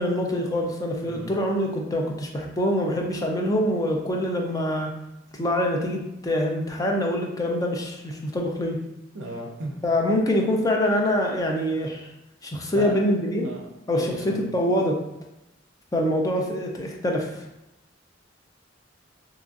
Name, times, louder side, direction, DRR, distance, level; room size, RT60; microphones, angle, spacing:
voice 1, 0.0-4.9 5.3-8.8 9.8-12.1 12.4-13.5 13.9-15.0 15.9-17.3, left 1 dB, 20° left, 0 dB, 0.4 m, -25 dB
voice 2, 9.1-9.8 12.7-13.0 13.4-14.4, right 1 dB, 70° right, 0 dB, 0.5 m, -35 dB
2.9 x 2.5 x 2.4 m, 0.90 s
head